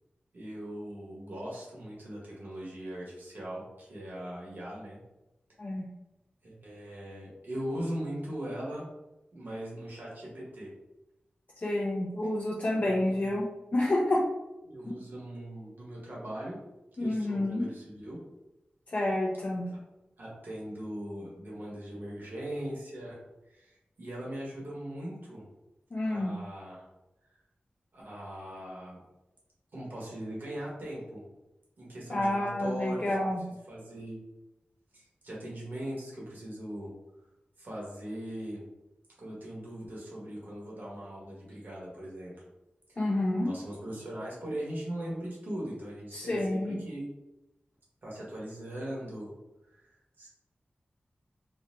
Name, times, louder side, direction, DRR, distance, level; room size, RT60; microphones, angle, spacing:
voice 1, 0.3-5.0 6.4-8.8 9.3-10.7 12.8-13.4 14.6-16.6 17.0-18.2 20.2-23.2 23.5-25.4 26.0-26.8 27.9-29.0 29.7-31.2 31.8-33.1 33.7-34.2 34.9-36.9 37.6-38.6 39.2-42.3 42.9-43.0 43.4-47.0 48.0-49.3 49.7-49.8 50.2-50.3, right 1 dB, 65° right, -5 dB, 1.2 m, -40 dB
voice 2, 11.6-13.5 13.7-14.2 14.8-14.9 17.0-17.7 18.9-19.7 25.9-26.3 32.1-33.4 43.0-43.5 46.1-46.8, left 1 dB, 45° left, -3 dB, 0.4 m, -29 dB
3.8 x 2.1 x 2.6 m, 0.96 s
wide cardioid pair, 95°, 4 cm